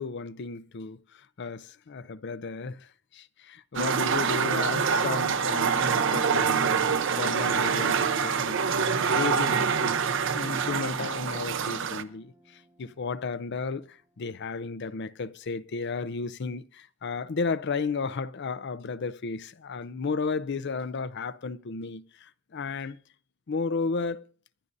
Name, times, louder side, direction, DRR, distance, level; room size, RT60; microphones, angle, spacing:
voice 1, 0.0-8.6 9.1-10.0 10.2-23.0 23.5-24.3, left 4 dB, 60° left, 0.5 m, -33 dB
sound 1, 3.8-12.0, right 6 dB, 65° right, 0.7 m, -26 dB
sound 2, 5.9-12.8, right 1 dB, 15° right, 0.7 m, -44 dB
24.5 x 11.0 x 2.6 m
head